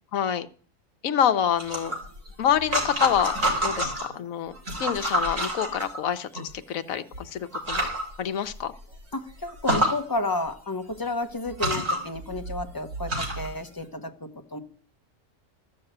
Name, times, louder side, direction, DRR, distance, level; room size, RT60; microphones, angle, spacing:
voice 1, 0.1-0.5 1.0-1.9 2.4-3.4 3.6-4.5 4.8-7.9 8.2-8.7, left 9 dB, 80° left, 11 dB, 1.2 m, -26 dB
sound 1, 1.6-4.1 4.6-6.4 7.1-7.2 7.5-8.0 8.5-8.6 8.9-9.0 9.5-9.9 10.9-11.0 11.5-13.5, right 1 dB, 70° right, 4.0 m, -28 dB
voice 2, 9.1-14.6, left 2 dB, 20° left, 6 dB, 0.9 m, -31 dB
13.5 x 6.4 x 7.9 m, 0.44 s
omnidirectional pair, 1.4 m